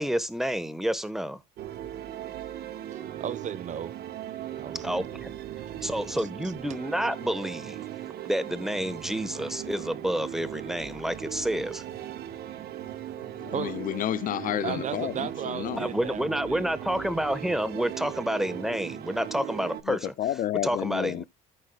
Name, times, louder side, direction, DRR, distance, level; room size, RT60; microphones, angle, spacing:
voice 1, 0.0-1.4 4.8-5.3 5.8-7.8 8.2-11.8 15.8-20.1 20.6-21.2, equal, ahead, 1.3 m, -29 dB
sound 1, 1.6-19.8, right 11 dB, 70° right, 1.3 m, -38 dB
voice 2, 2.9-3.9 4.6-5.1 5.8-6.3 13.5-13.7 14.6-16.7 17.5-17.7, right 8 dB, 45° right, 0.9 m, -36 dB
voice 3, 13.4-15.1 15.5-15.9 19.9-21.2, left 13 dB, 55° left, 0.4 m, -30 dB
14.0 x 6.4 x 2.3 m
cardioid pair, 110°, 17 cm